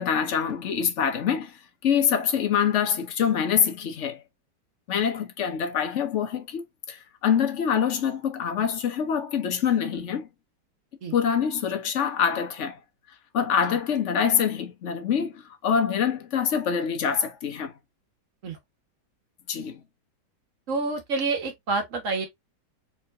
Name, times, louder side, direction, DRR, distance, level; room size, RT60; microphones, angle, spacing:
voice 1, 0.0-1.6 1.8-4.2 4.9-6.6 6.9-10.3 11.1-12.8 13.3-15.3 15.6-17.7 19.5-19.8, left 7 dB, 55° left, 0.9 m, -25 dB
voice 2, 20.7-22.3, right 3 dB, 45° right, 1.5 m, -28 dB
4.4 x 3.6 x 2.5 m
omnidirectional pair, 1.9 m